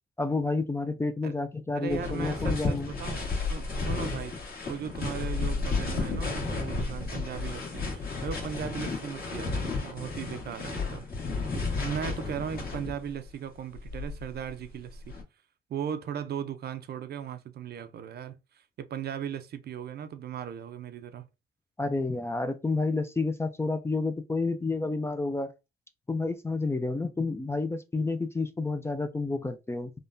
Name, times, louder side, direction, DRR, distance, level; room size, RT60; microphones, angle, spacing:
voice 1, 0.2-2.9 21.8-25.5 26.1-29.9, left 3 dB, 15° left, 0.3 m, -30 dB
voice 2, 1.7-15.1 15.7-21.3, right 8 dB, 55° right, 0.5 m, -38 dB
sound 1, 1.9-13.2 13.7-15.2, left 3 dB, 50° left, 1.5 m, -32 dB
3.5 x 2.2 x 2.5 m
cardioid pair, 90°, 20 cm